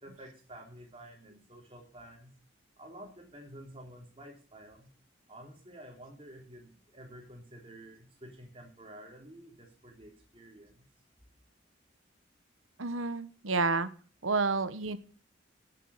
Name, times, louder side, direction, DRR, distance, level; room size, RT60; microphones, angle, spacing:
voice 1, 0.0-2.3 2.8-4.9 5.3-10.8, right 1 dB, 25° right, 1 dB, 3.9 m, -50 dB
voice 2, 12.8-13.9 14.2-15.0, right 3 dB, 85° right, 13 dB, 1.2 m, -30 dB
12.5 x 8.3 x 7.2 m, 0.39 s
head